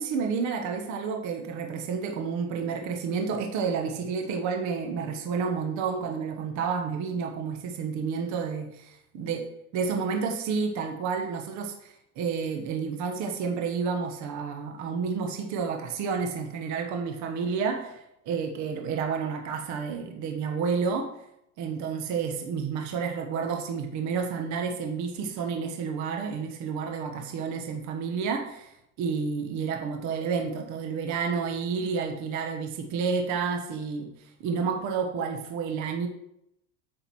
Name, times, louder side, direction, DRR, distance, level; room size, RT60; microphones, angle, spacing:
voice 1, 0.0-8.7 9.1-9.4 9.7-21.1 21.6-36.1, right 5 dB, 40° right, 4 dB, 1.2 m, -30 dB
8.7 x 5.1 x 6.0 m, 0.78 s
cardioid pair, 160°, 45 cm